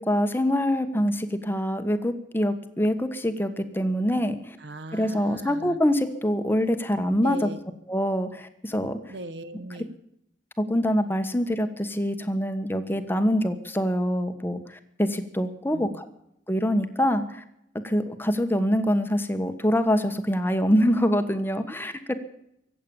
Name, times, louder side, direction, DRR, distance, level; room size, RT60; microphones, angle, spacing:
voice 1, 0.0-4.6 4.9-7.5 7.9-9.0 9.7-9.8 10.6-16.1 16.5-17.4 17.8-22.1, equal, 10° left, 9 dB, 1.3 m, -25 dB
voice 2, 4.6-5.8 7.2-7.6 9.1-9.9 15.7-16.0, right 1 dB, 70° right, 12 dB, 1.5 m, -38 dB
23.5 x 8.6 x 7.1 m, 0.76 s
head